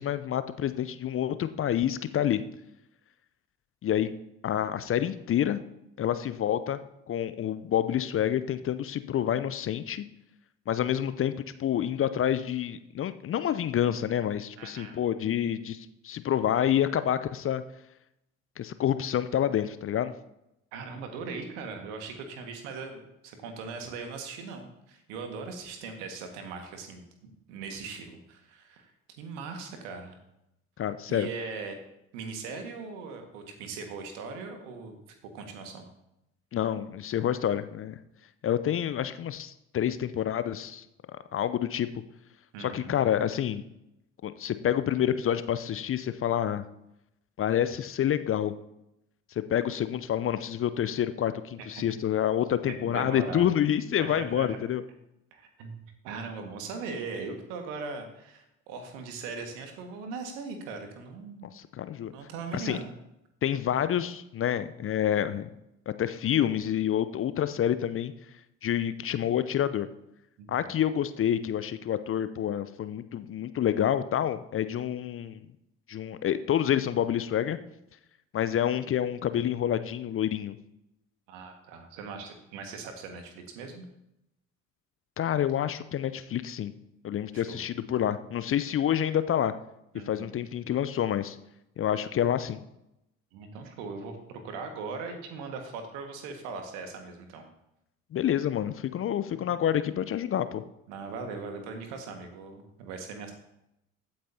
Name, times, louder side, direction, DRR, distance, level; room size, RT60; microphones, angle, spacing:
voice 1, 0.0-2.4 3.8-4.1 4.4-5.6 6.0-6.8 7.1-10.0 10.7-17.6 18.6-20.1 30.8-31.3 36.5-37.9 38.4-40.8 41.3-41.9 42.6-43.6 44.2-46.6 47.4-48.5 49.3-54.8 61.4-62.1 62.5-62.8 63.4-65.5 65.9-68.1 68.6-69.9 70.5-75.5 75.9-77.6 78.3-80.6 85.2-86.7 87.0-89.5 90.1-91.4 91.8-92.6 98.1-100.6, left 10 dB, 35° left, 13 dB, 0.6 m, -28 dB
voice 2, 14.6-15.0 20.7-28.9 29.2-30.2 31.1-31.8 32.1-35.0 35.3-35.9 42.5-42.9 51.6-51.8 52.8-53.6 54.0-54.6 55.3-61.4 62.1-62.9 70.4-70.7 81.3-83.9 87.3-87.7 89.9-90.3 93.3-97.4 99.3-99.4 100.9-103.3, right 4 dB, 65° right, 5 dB, 1.8 m, -40 dB
15.0 x 8.7 x 2.8 m, 0.84 s
figure-of-eight pair, 50°, 39 cm